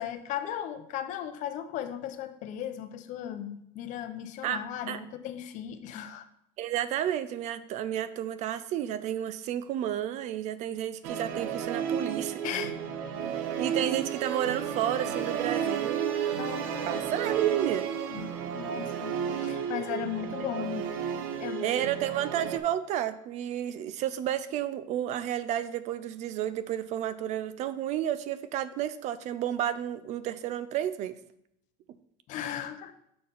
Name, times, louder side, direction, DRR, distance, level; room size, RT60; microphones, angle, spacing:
voice 1, 0.0-6.2 12.4-12.8 16.4-17.4 18.1-20.9 21.4-21.7 32.3-32.9, left 10 dB, 50° left, 10 dB, 0.6 m, -37 dB
voice 2, 6.6-12.4 13.6-16.3 16.9-17.9 20.6-20.7 21.6-31.2, right 11 dB, 45° right, 14 dB, 0.4 m, -31 dB
Musical instrument, 11.0-22.6, right 8 dB, 90° right, 0.7 m, -32 dB
6.5 x 4.4 x 5.4 m, 0.76 s
cardioid pair, 165°, 17 cm